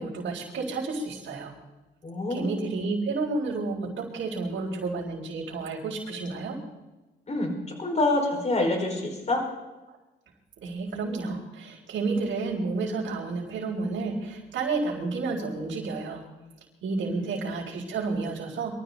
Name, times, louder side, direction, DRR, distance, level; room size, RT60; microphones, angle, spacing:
voice 1, 0.0-1.5 2.3-6.6 10.6-16.2 16.8-18.7, right 3 dB, 65° right, -5 dB, 4.1 m, -31 dB
voice 2, 2.0-2.8 7.3-9.4 17.1-17.3, left 2 dB, 35° left, 2 dB, 5.0 m, -27 dB
23.5 x 14.0 x 4.1 m, 1.1 s
cardioid pair, 90°, 20 cm